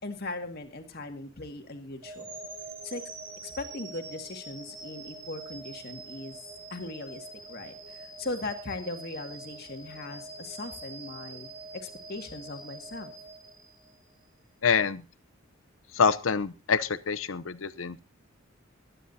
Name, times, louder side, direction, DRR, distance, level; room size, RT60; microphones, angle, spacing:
voice 1, 0.0-2.4 2.8-3.0 3.4-6.4 6.7-13.1, left 2 dB, 45° left, 5 dB, 2.0 m, -39 dB
sound 1, 2.0-14.1, right 3 dB, 40° right, 5.5 m, -45 dB
voice 2, 14.6-15.0 15.9-18.0, left 6 dB, 70° left, 15 dB, 0.7 m, -26 dB
24.0 x 10.0 x 2.8 m, 0.28 s
head